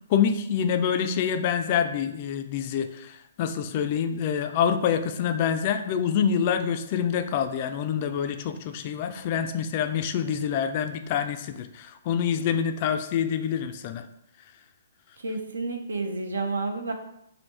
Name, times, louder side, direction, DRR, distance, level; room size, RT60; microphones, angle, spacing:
voice 1, 0.1-14.0, left 8 dB, 35° left, 8 dB, 0.3 m, -26 dB
voice 2, 15.2-16.9, right 3 dB, 65° right, 5 dB, 0.5 m, -30 dB
3.3 x 2.6 x 4.1 m, 0.79 s
figure-of-eight pair, 125°, 0 cm